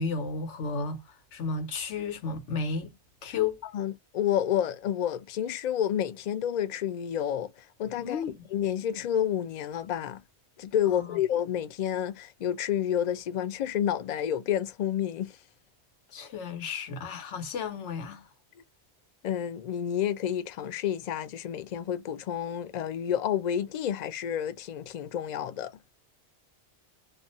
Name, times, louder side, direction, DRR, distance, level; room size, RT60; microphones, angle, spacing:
voice 1, 0.0-2.9 3.2-3.6 8.0-8.5 10.9-11.1 16.1-18.3, left 5 dB, 85° left, 1.1 m, -33 dB
voice 2, 3.7-7.5 7.8-8.2 8.5-10.2 10.6-15.3 19.2-25.8, left 10 dB, 60° left, 0.4 m, -29 dB
2.5 x 2.1 x 2.6 m
omnidirectional pair, 1.2 m